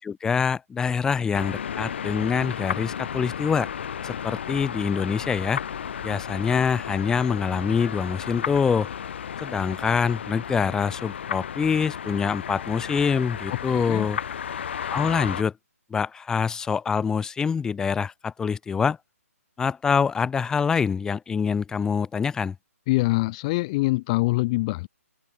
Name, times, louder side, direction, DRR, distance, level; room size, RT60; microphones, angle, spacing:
voice 1, 0.0-3.7 4.0-5.6 6.0-8.9 9.4-14.2 14.9-15.5 15.9-19.0 19.6-22.6, left 6 dB, 10° left, 3.6 m, -25 dB
sound 1, 1.3-15.4, left 8 dB, 50° left, 6.6 m, -33 dB
voice 2, 13.7-14.1 22.9-24.9, left 22 dB, 25° left, 1.4 m, -24 dB
figure-of-eight pair, 140°, 8 cm